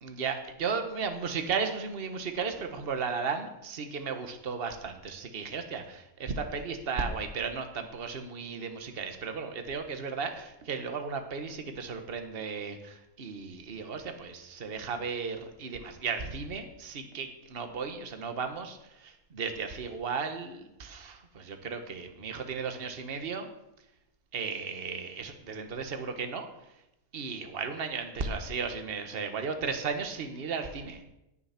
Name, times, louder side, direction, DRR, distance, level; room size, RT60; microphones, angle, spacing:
voice 1, 0.0-23.5 24.3-26.5 27.1-31.0, right 5 dB, 40° right, 7 dB, 1.4 m, -35 dB
18.5 x 7.1 x 5.8 m, 0.88 s
omnidirectional pair, 1.6 m